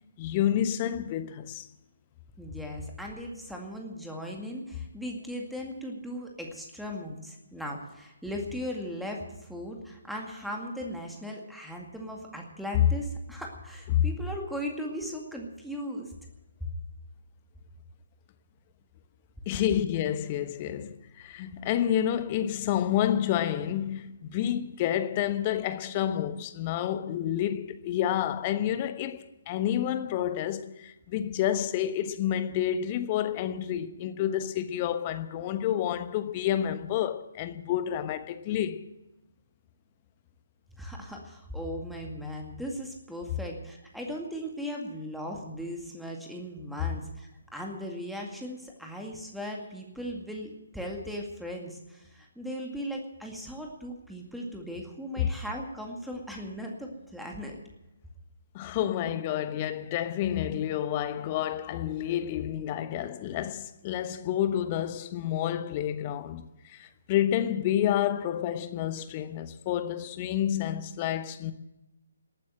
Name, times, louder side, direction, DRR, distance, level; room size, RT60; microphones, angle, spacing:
voice 1, 0.2-1.7 13.9-14.1 19.5-38.8 55.2-55.3 58.5-71.5, left 11 dB, 25° left, 1.2 m, -29 dB
voice 2, 2.4-16.1 16.6-16.7 40.8-57.6, equal, ahead, 2.2 m, -38 dB
19.5 x 9.1 x 7.7 m
figure-of-eight pair, 140°, 0 cm